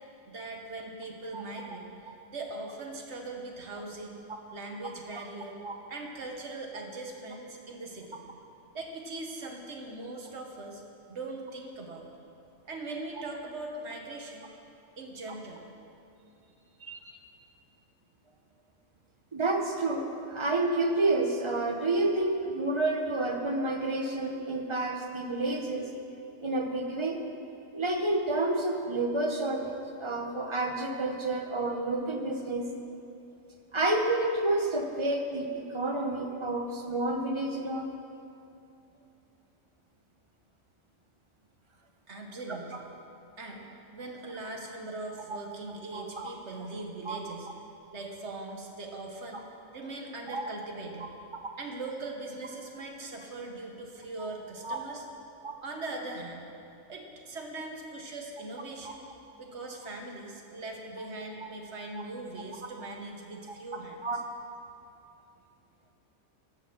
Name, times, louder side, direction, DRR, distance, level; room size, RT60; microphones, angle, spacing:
voice 1, 0.3-5.6 5.9-8.2 8.7-10.8 11.1-12.1 12.6-14.6 15.0-15.6 42.1-42.8 43.4-47.5 47.9-49.5 49.7-51.1 51.6-55.0 55.6-56.5 56.9-59.0 59.4-64.0, right 2 dB, 55° right, 2 dB, 1.4 m, -40 dB
voice 2, 19.3-25.9 26.4-27.2 27.7-32.7 33.7-37.9 45.9-46.3 47.0-47.2 50.3-50.5 51.4-51.5 54.2-54.3 54.6-54.8 55.4-55.5 64.0-64.2, right 2 dB, 30° right, 3 dB, 0.7 m, -29 dB
13.5 x 6.4 x 6.4 m, 2.8 s
omnidirectional pair, 1.4 m